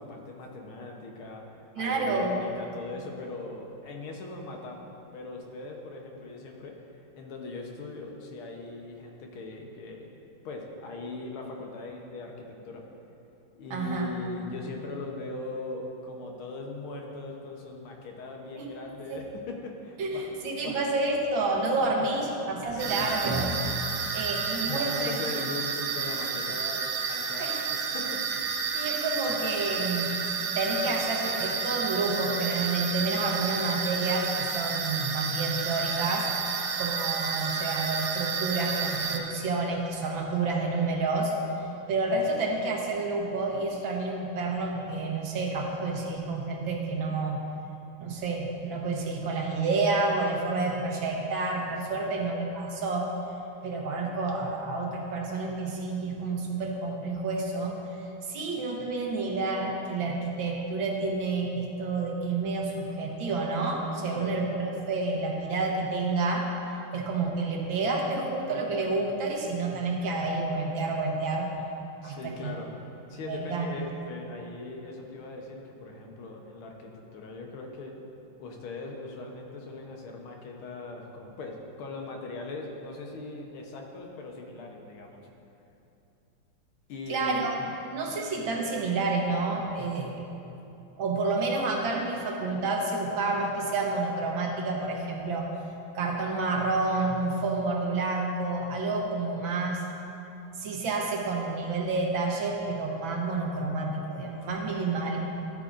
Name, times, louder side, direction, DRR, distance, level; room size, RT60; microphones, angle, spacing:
voice 1, 0.0-6.7 7.2-10.1 10.5-12.8 13.6-20.8 21.6-22.1 22.7-23.0 24.4-26.8 27.1-28.2 33.4-33.5 51.9-52.1 64.1-64.4 72.0-72.7 73.1-77.9 78.4-85.3 86.9-87.5 105.1-105.2, left 3 dB, 80° left, 1 dB, 1.8 m, -40 dB
voice 2, 1.8-2.4 13.7-14.1 18.5-18.7 19.1-19.2 20.0-23.6 24.1-25.2 27.4-27.6 28.7-30.1 30.6-36.3 36.8-41.3 41.6-47.4 48.0-53.1 53.6-66.5 66.9-71.5 72.0-72.6 73.3-73.7 87.1-87.5 87.9-90.2 91.0-95.5 96.0-99.8 100.6-105.2, right 3 dB, 70° right, 0 dB, 1.7 m, -29 dB
sound 1, 22.8-39.2, right 6 dB, 90° right, 1.7 m, -31 dB
13.0 x 8.5 x 2.5 m, 2.8 s
omnidirectional pair, 2.3 m